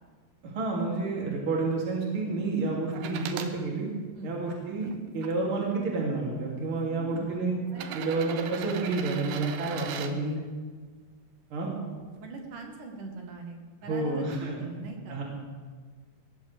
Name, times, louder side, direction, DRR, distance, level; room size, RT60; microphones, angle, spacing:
voice 1, 0.4-3.9 4.2-7.5 7.9-10.4 11.5-11.7 13.9-14.6 15.1-15.2, right 3 dB, 35° right, -3 dB, 3.3 m, -30 dB
sound 1, 2.9-3.5 4.3-5.3 6.3-6.4 7.7-10.1 12.0-12.1, right 9 dB, 80° right, 2.7 m, -39 dB
voice 2, 6.9-7.3 7.7-8.0 9.7-10.2 12.2-14.2 14.6-15.2, right 3 dB, 60° right, 2 dB, 2.8 m, -42 dB
20.0 x 16.5 x 3.5 m, 1.5 s
omnidirectional pair, 4.8 m